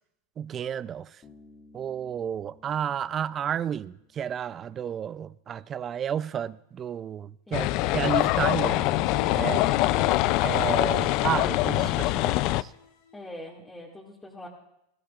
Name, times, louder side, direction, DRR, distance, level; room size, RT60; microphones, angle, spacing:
voice 1, 0.4-1.2 1.7-8.8 9.3-9.6 10.4-12.7, right 8 dB, 30° right, 0.4 m, -32 dB
Bass guitar, 1.2-4.8, left 2 dB, 25° left, 2.1 m, -57 dB
sound 1, 7.5-12.6, left 18 dB, 50° left, 0.3 m, -24 dB
sound 2, 7.8-13.2, left 5 dB, 65° left, 1.6 m, -40 dB
voice 2, 13.1-14.5, left 1 dB, 10° left, 1.9 m, -44 dB
19.5 x 14.0 x 2.4 m
hypercardioid pair, 115°, 0 cm